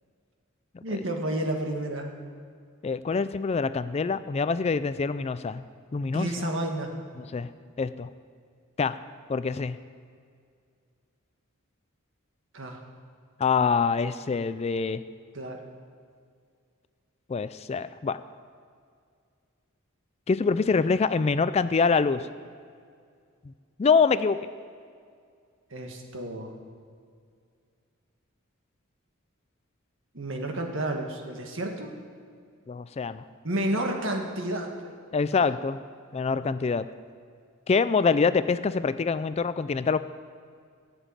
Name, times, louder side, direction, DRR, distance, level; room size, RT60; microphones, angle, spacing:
voice 1, 0.8-2.1 6.1-6.9 12.5-12.8 15.3-15.6 25.7-26.6 30.1-31.9 33.4-34.9 35.3-35.4, right 1 dB, 65° right, 3 dB, 1.8 m, -31 dB
voice 2, 2.8-5.6 5.9-6.3 7.2-7.5 7.8-8.1 8.8-9.0 9.3-9.8 13.4-15.0 17.3-18.2 20.3-22.3 23.8-24.4 32.7-33.2 35.1-35.8 36.1-36.9 37.7-40.0, left 5 dB, 30° left, 14 dB, 0.4 m, -25 dB
14.5 x 7.1 x 9.0 m, 2.2 s
head